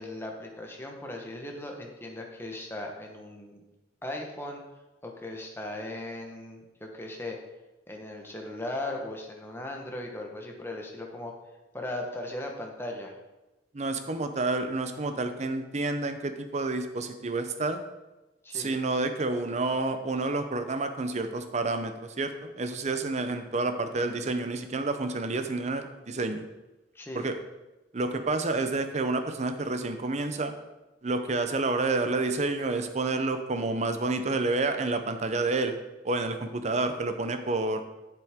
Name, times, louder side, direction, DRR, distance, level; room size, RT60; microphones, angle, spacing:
voice 1, 0.0-3.6 4.0-4.6 5.0-7.4 7.9-11.3 11.7-13.1 18.4-18.7 26.9-27.3, left 1 dB, 15° left, 1 dB, 1.0 m, -38 dB
voice 2, 13.7-17.8 18.5-26.5 27.1-27.4 27.9-30.5 31.0-35.7 36.0-37.8, right 3 dB, 40° right, 8 dB, 0.6 m, -29 dB
7.9 x 7.6 x 3.6 m, 1.1 s
head